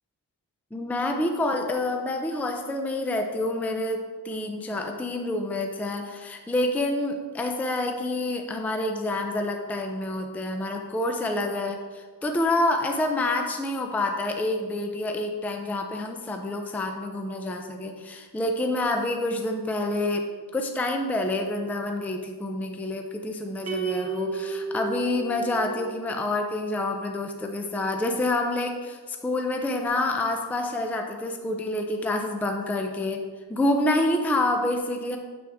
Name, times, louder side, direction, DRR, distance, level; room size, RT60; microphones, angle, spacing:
voice 1, 0.7-20.2 20.5-33.2 33.5-35.2, left 2 dB, 5° left, 3 dB, 0.4 m, -28 dB
sound 1, 23.7-26.1, right 4 dB, 35° right, 0.8 m, -32 dB
7.5 x 6.1 x 3.5 m, 1.4 s
wide cardioid pair, 160°, 43 cm